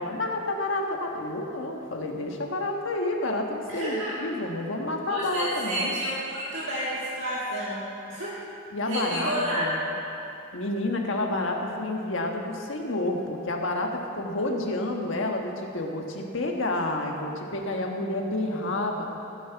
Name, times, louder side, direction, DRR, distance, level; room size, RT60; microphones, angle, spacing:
voice 1, 0.0-6.0 8.7-9.8 10.5-19.1, left 2 dB, 65° left, 2 dB, 1.5 m, -29 dB
voice 2, 3.7-4.2 5.1-8.3 8.9-9.9, equal, 65° right, -7 dB, 1.9 m, -30 dB
16.5 x 9.9 x 4.6 m, 2.7 s
head